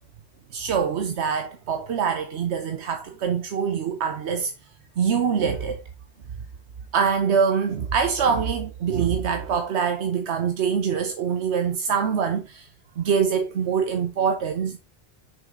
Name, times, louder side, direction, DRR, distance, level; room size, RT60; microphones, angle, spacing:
voice 1, 0.5-4.5 5.0-5.8 6.9-12.7 13.0-14.8, right 6 dB, 85° right, 1.1 m, -24 dB
6.5 x 6.0 x 3.8 m
omnidirectional pair, 1.1 m